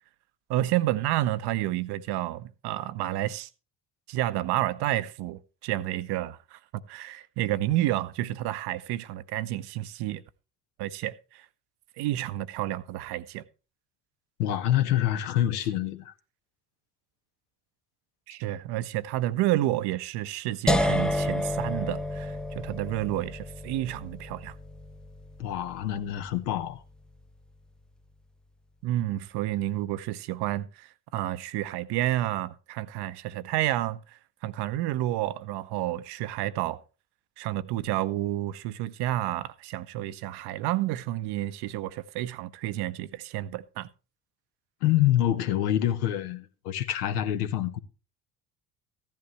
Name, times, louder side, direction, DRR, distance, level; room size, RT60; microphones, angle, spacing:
voice 1, 0.5-3.5 4.1-10.2 10.8-11.5 12.0-13.4 18.3-24.5 28.8-36.8 37.4-43.9, right 14 dB, 55° right, 0.7 m, -30 dB
voice 2, 14.4-16.1 25.4-26.8 44.8-47.8, left 12 dB, 75° left, 1.0 m, -26 dB
sound 1, 20.7-26.6, left 1 dB, ahead, 0.5 m, -30 dB
15.0 x 10.5 x 3.1 m
figure-of-eight pair, 50°, 46 cm